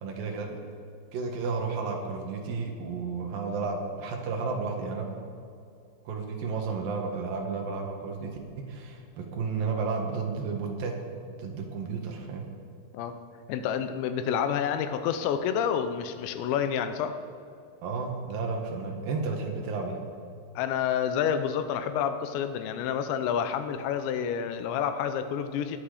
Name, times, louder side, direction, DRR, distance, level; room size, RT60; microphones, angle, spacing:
voice 1, 0.0-0.6 1.1-5.1 6.0-8.3 8.7-10.9 11.4-12.5 17.8-20.0, right 4 dB, 60° right, 2 dB, 2.6 m, -32 dB
voice 2, 13.5-17.2 20.6-25.8, left 8 dB, 80° left, 9 dB, 3.0 m, -29 dB
21.0 x 8.6 x 5.0 m, 2.4 s
omnidirectional pair, 5.3 m